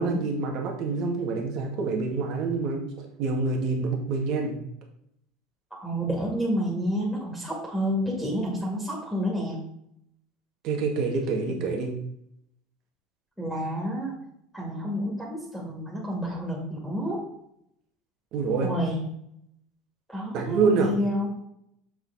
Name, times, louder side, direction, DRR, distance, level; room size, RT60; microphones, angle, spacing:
voice 1, 0.0-2.8 3.2-4.6 10.6-12.0 18.3-18.7 20.3-20.9, right 4 dB, 55° right, 1 dB, 1.8 m, -26 dB
voice 2, 5.7-9.6 11.5-11.6 13.4-14.2 14.5-17.2 18.6-19.0 20.1-21.3, equal, ahead, -4 dB, 2.3 m, -29 dB
6.8 x 6.3 x 4.0 m, 0.74 s
supercardioid pair, 125°, 0 cm